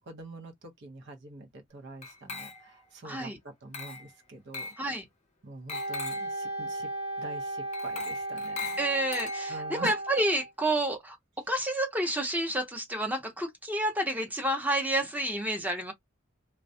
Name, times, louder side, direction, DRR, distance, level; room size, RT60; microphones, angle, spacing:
voice 1, 0.0-3.3 3.6-4.7 5.4-6.9 7.2-8.7 9.5-10.0, right 2 dB, 60° right, 0.7 m, -45 dB
Glass, 2.0-2.9 3.7-4.1 4.5-4.8 5.7-6.3 7.7-9.8, left 4 dB, 35° left, 0.5 m, -40 dB
voice 2, 3.0-3.4 4.8-5.0 8.8-11.2 11.5-15.9, right 1 dB, 10° right, 0.7 m, -29 dB
Wind instrument woodwind instrument, 5.7-10.5, right 2 dB, 30° right, 0.9 m, -35 dB
2.3 x 2.0 x 2.6 m
head